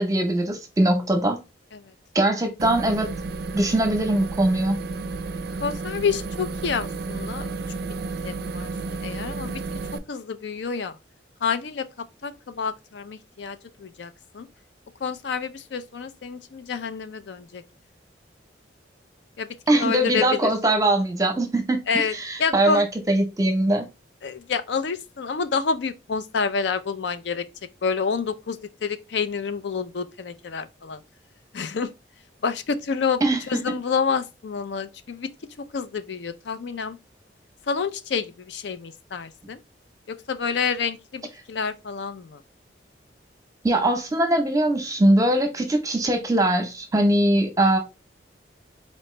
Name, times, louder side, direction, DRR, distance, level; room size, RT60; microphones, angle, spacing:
voice 1, 0.0-1.4 2.1-3.1 3.5-4.8 19.7-23.9 33.2-33.4 43.6-47.8, right 1 dB, 20° right, 0.7 m, -21 dB
sound 1, 2.6-10.0, right 3 dB, 55° right, 0.4 m, -32 dB
voice 2, 5.6-7.5 8.2-8.7 9.0-9.6 10.1-11.0 11.4-11.9 12.2-14.5 15.0-17.6 19.4-20.5 21.9-22.1 22.4-22.8 24.2-27.4 27.8-31.0 31.5-31.9 32.4-33.2 33.5-35.3 35.6-37.0 37.7-39.6 40.1-42.4, left 5 dB, 70° left, 0.4 m, -28 dB
4.2 x 2.9 x 3.1 m
head